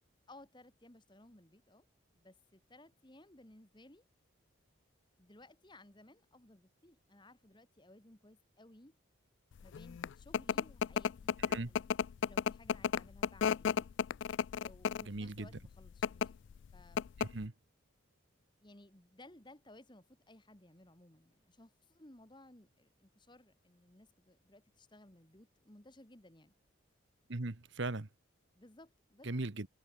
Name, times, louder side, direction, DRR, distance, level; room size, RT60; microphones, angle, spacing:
voice 1, 0.3-1.9 2.1-4.0 5.2-9.0 9.6-11.4 11.7-11.9 12.2-13.9 14.5-16.4 16.7-17.1 18.6-26.5 28.5-29.3, left 1 dB, 20° left, 1.8 m, -59 dB
sound 1, 9.7-15.2 15.9-16.3 16.6-16.7 17.0-17.5, left 7 dB, 60° left, 0.3 m, -32 dB
voice 2, 15.0-15.5 17.2-17.5 27.3-28.1 29.2-29.7, right 2 dB, 60° right, 1.2 m, -38 dB
head